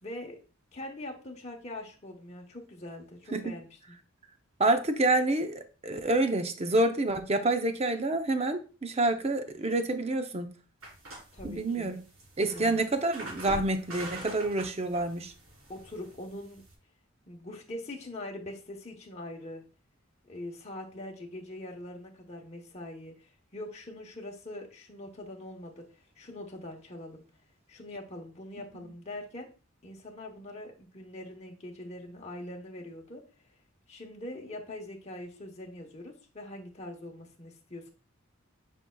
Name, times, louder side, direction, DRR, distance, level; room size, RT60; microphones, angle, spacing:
voice 1, 0.0-0.4 0.7-4.0 11.3-12.0 12.5-12.8 15.7-16.6 17.3-19.6 20.2-27.2 27.7-29.5 29.8-33.2 33.9-37.9, left 1 dB, 30° left, 0 dB, 1.0 m, -43 dB
voice 2, 4.6-10.5 11.4-12.0 12.4-15.3 28.7-28.9, right 2 dB, 30° right, 7 dB, 0.7 m, -28 dB
sound 1, 10.8-16.7, right 1 dB, 85° right, 3.7 m, -44 dB
8.8 x 5.4 x 2.3 m, 0.35 s
head